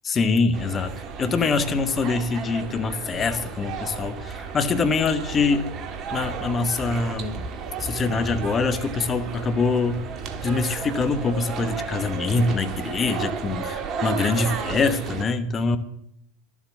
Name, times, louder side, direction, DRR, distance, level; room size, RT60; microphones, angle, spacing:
voice 1, 0.0-0.9 1.2-5.7 6.1-7.5 7.8-10.0 10.4-15.8, left 4 dB, 30° left, 11 dB, 1.2 m, -24 dB
sound 1, 0.5-15.2, right 5 dB, 40° right, 1.5 m, -33 dB
12.5 x 7.4 x 8.0 m, 0.74 s
hypercardioid pair, 85°, 0 cm